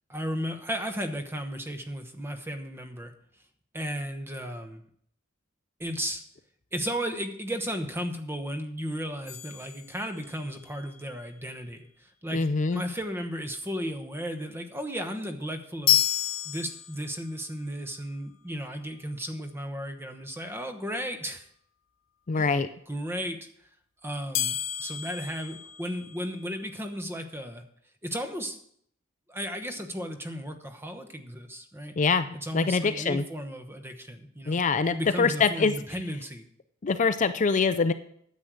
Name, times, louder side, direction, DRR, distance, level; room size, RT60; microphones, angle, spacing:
voice 1, 0.1-3.1 3.7-4.8 5.8-6.2 6.7-16.0 16.4-21.5 22.4-22.5 22.9-23.4 24.0-27.6 28.0-28.6 29.3-31.9 32.3-34.6 34.9-36.4, equal, 10° right, 6 dB, 1.0 m, -34 dB
sound 1, 9.3-10.6 15.9-17.4 24.3-26.5, left 12 dB, 85° left, 1.2 m, -30 dB
voice 2, 12.3-12.8 22.3-22.7 32.0-33.2 34.5-35.7 36.8-37.9, left 4 dB, 40° left, 11 dB, 0.4 m, -24 dB
9.7 x 8.1 x 6.3 m, 0.66 s
head